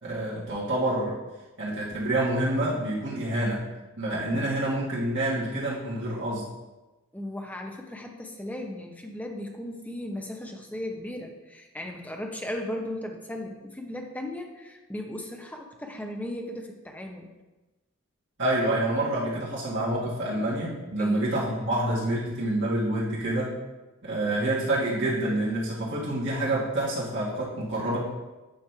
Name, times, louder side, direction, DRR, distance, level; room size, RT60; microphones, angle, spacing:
voice 1, 0.0-1.2 1.6-3.6 4.0-6.4 18.4-23.5 24.0-28.0, right 1 dB, 60° right, -7 dB, 1.9 m, -27 dB
voice 2, 4.2-4.6 7.1-17.3 21.0-21.3, left 1 dB, 10° left, 2 dB, 0.7 m, -36 dB
8.7 x 3.2 x 5.7 m, 1.1 s
head